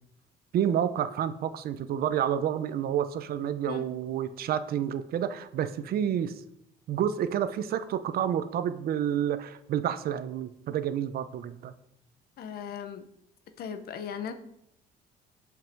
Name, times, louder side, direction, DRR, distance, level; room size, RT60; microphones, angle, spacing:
voice 1, 0.5-6.3 6.9-11.7, right 9 dB, 65° right, 12 dB, 0.9 m, -29 dB
voice 2, 12.4-13.0 13.6-14.3, left 7 dB, 65° left, 9 dB, 1.4 m, -37 dB
17.5 x 5.9 x 4.7 m, 0.77 s
cardioid pair, 110°, 17 cm